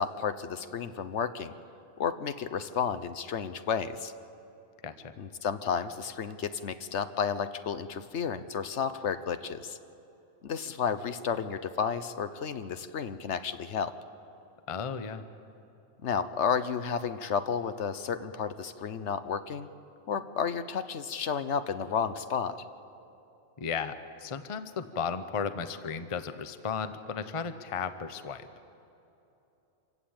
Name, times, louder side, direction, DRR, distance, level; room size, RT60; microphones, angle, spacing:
voice 1, 0.0-1.5 2.0-4.1 5.2-9.8 10.4-14.0 16.0-19.7 20.1-22.6, left 7 dB, 60° left, 12 dB, 1.0 m, -32 dB
voice 2, 4.8-5.1 14.7-15.2 23.6-28.5, left 6 dB, 30° left, 10 dB, 0.7 m, -35 dB
26.0 x 15.5 x 8.7 m, 2.9 s
omnidirectional pair, 1.4 m